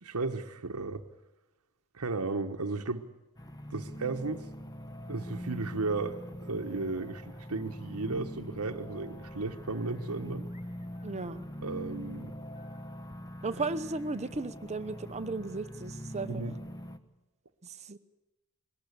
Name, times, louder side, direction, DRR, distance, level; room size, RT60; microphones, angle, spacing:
voice 1, 0.0-1.0 1.9-3.1 3.7-4.5 5.1-10.5 11.6-12.3 16.3-16.6, right 3 dB, 85° right, 5 dB, 1.2 m, -34 dB
sound 1, 3.4-17.0, equal, 15° left, 1.1 m, -43 dB
sound 2, 10.5-13.0, left 1 dB, 35° left, 5.9 m, -65 dB
voice 2, 11.0-11.4 13.4-16.4 17.6-18.0, right 3 dB, 30° right, 11 dB, 0.8 m, -35 dB
22.0 x 18.5 x 8.3 m, 1.0 s
head